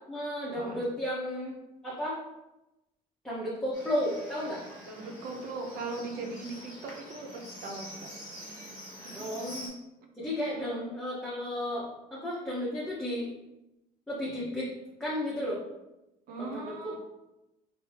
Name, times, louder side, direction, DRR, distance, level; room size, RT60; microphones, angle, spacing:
voice 1, 0.1-1.5 1.8-2.2 3.2-4.6 9.1-9.7 10.2-13.3 14.1-14.7 15.0-15.6 16.4-17.0, left 1 dB, 5° left, -8 dB, 0.8 m, -33 dB
Livestock farm animals working animals, 3.7-9.7, equal, 20° left, 1.5 m, -46 dB
voice 2, 4.9-8.1 9.0-9.5 10.5-10.7 16.3-17.0, right 3 dB, 65° right, 3 dB, 0.6 m, -39 dB
2.7 x 2.6 x 3.3 m, 0.95 s
cardioid pair, 110°, 17 cm